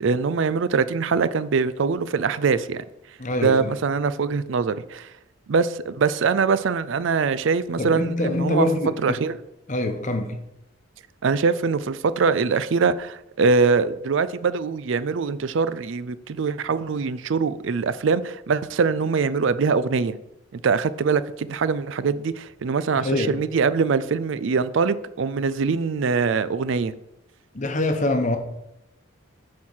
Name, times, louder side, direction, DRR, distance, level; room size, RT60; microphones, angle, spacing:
voice 1, 0.0-2.8 3.4-5.1 5.5-8.7 9.0-9.4 11.2-20.2 20.5-26.9, right 5 dB, 65° right, 0.4 m, -23 dB
voice 2, 3.2-3.6 7.8-9.2 9.7-10.3 22.9-23.4 27.5-28.4, left 1 dB, 35° left, 1.0 m, -24 dB
9.4 x 4.5 x 6.3 m
head